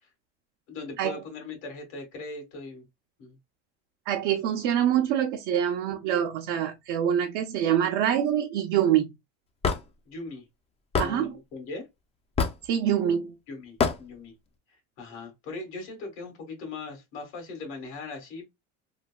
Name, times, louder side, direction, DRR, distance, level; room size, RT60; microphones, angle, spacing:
voice 1, 0.7-2.8 3.2-3.4 10.0-10.5 11.0-11.9 13.5-14.3 15.0-18.5, left 3 dB, 85° left, 1.6 m, -39 dB
voice 2, 4.1-9.1 11.0-11.4 12.6-13.3, right 10 dB, 70° right, 0.6 m, -25 dB
Hammer / Wood, 9.6-9.8 10.9-11.1 12.4-12.7 13.8-14.0, left 5 dB, 20° left, 0.3 m, -24 dB
3.2 x 2.3 x 2.2 m
supercardioid pair, 110°, 34 cm